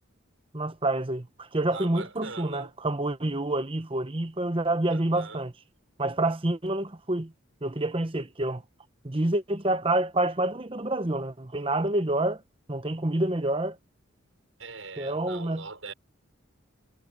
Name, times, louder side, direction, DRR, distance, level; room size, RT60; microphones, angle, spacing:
voice 1, 0.5-5.5 6.0-7.3 7.6-8.6 9.0-12.4 12.7-13.8 15.0-15.7, right 1 dB, 25° right, 1.0 m, -28 dB
voice 2, 1.7-2.7 4.9-5.4 14.6-15.9, right 4 dB, 75° right, 5.9 m, -41 dB
head